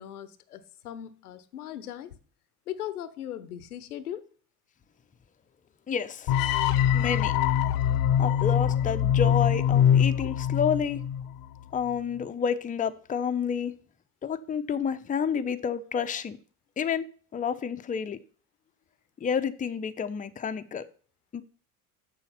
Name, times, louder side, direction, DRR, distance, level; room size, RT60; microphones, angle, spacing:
voice 1, 0.0-2.2 2.7-4.3, left 11 dB, 85° left, 0.8 m, -39 dB
voice 2, 5.9-6.3 6.9-7.3 8.2-11.0 11.7-13.7 14.2-16.4 16.8-17.1 17.3-18.2 19.2-20.9 21.3-21.4, left 7 dB, 20° left, 0.6 m, -29 dB
sound 1, 6.3-11.4, left 9 dB, 50° left, 0.7 m, -23 dB
7.1 x 6.3 x 5.6 m
hypercardioid pair, 70°, 43 cm